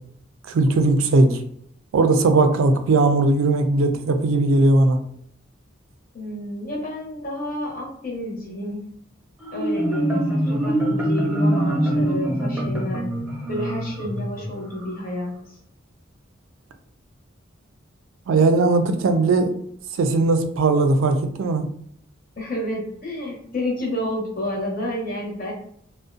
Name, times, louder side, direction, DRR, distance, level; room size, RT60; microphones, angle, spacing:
voice 1, 0.5-1.4 1.9-5.0 18.3-19.5 20.0-21.7, right 2 dB, 90° right, 0.4 m, -18 dB
voice 2, 6.1-8.9 9.5-13.1 13.5-15.3 22.4-25.5, left 1 dB, 45° left, 0.7 m, -30 dB
Marimba xylophone, 9.4-15.0, right 1 dB, 10° right, 0.7 m, -24 dB
2.4 x 2.1 x 2.5 m
head